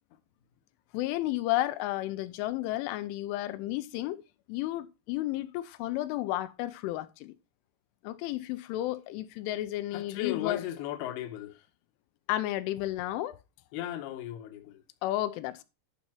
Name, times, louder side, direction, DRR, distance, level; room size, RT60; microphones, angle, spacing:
voice 1, 0.9-4.2 4.5-7.3 8.0-10.6 12.3-13.4 15.0-15.6, left 15 dB, 90° left, 3.1 m, -32 dB
voice 2, 9.9-11.6 13.7-14.8, left 13 dB, 70° left, 2.6 m, -36 dB
11.0 x 5.5 x 4.4 m
omnidirectional pair, 5.5 m